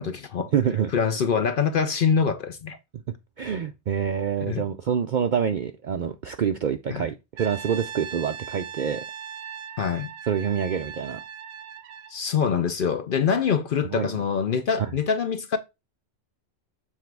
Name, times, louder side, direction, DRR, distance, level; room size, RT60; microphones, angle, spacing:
voice 1, 0.0-0.5 0.9-2.8 4.5-4.6 6.9-7.0 9.8-10.1 12.1-15.6, left 6 dB, 55° left, 0.6 m, -24 dB
voice 2, 0.5-0.9 3.4-9.0 10.3-11.2 13.9-14.1 14.8-14.9, right 8 dB, 60° right, 0.5 m, -26 dB
Brass instrument, 7.4-12.2, right 8 dB, 90° right, 1.1 m, -39 dB
7.3 x 3.5 x 4.6 m
omnidirectional pair, 1.3 m